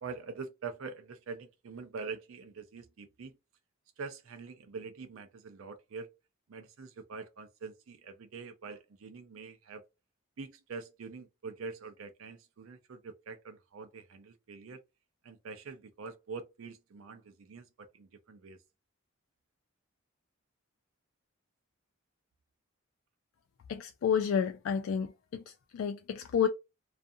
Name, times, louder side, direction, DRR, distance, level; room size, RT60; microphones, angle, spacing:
voice 1, 0.0-3.4 4.0-6.1 6.5-9.8 10.4-14.8 15.2-18.6, right 4 dB, 75° right, 0.5 m, -44 dB
voice 2, 23.7-25.4 25.7-26.5, left 7 dB, 70° left, 0.3 m, -30 dB
2.5 x 2.4 x 2.6 m
head